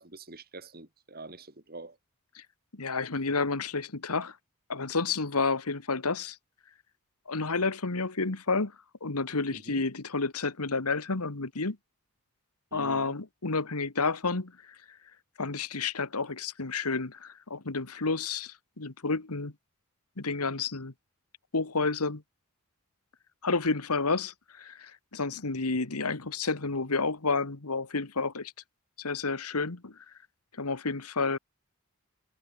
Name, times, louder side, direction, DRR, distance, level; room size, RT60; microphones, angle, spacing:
voice 1, 0.0-1.9 9.5-9.9 12.7-13.1, right 2 dB, 45° right, 4.7 m, -45 dB
voice 2, 2.7-4.4 4.7-6.4 7.3-8.7 9.0-11.8 12.7-14.5 14.9-15.0 15.4-19.5 20.2-20.9 21.5-22.2 23.4-28.5 29.0-30.0 30.6-31.4, left 4 dB, 90° left, 1.7 m, -30 dB
head